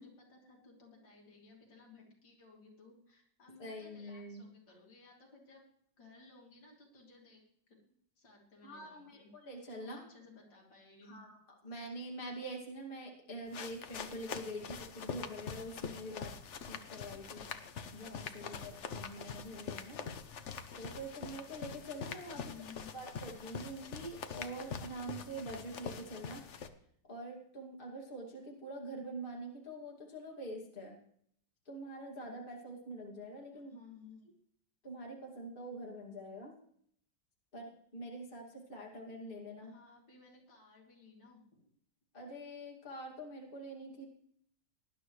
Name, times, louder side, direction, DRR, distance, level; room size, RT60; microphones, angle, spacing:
voice 1, 0.0-5.6 6.0-7.4 7.7-7.8 8.2-9.3 9.8-11.2 22.3-23.0 33.5-34.2 39.6-41.7, left 4 dB, 70° left, -1 dB, 3.5 m, -58 dB
voice 2, 3.6-4.5 8.6-10.0 11.0-16.3 16.6-17.5 17.9-20.0 20.8-22.4 22.9-26.4 27.0-31.0 31.7-33.8 34.8-36.5 37.5-39.7 42.1-44.0, right 1 dB, 25° left, -1 dB, 2.5 m, -45 dB
sound 1, 13.5-26.7, left 6 dB, 50° left, 0.9 m, -44 dB
19.0 x 11.0 x 3.2 m, 0.65 s
omnidirectional pair, 2.1 m